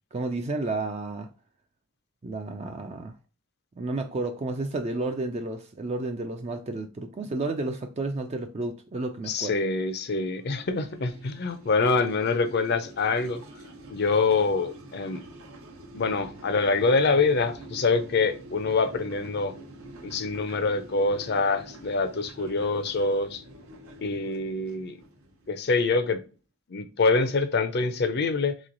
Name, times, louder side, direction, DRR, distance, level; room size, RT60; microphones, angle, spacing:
voice 1, 0.1-1.3 2.2-3.2 3.8-9.6, right 2 dB, 30° right, 0.3 m, -31 dB
voice 2, 9.3-13.4 13.9-15.2 15.9-19.5 20.0-23.4 24.0-25.0 25.5-26.2 26.7-28.6, left 3 dB, 50° left, 0.5 m, -25 dB
sound 1, 9.5-26.2, right 1 dB, 75° right, 0.9 m, -47 dB
3.8 x 3.1 x 3.8 m
head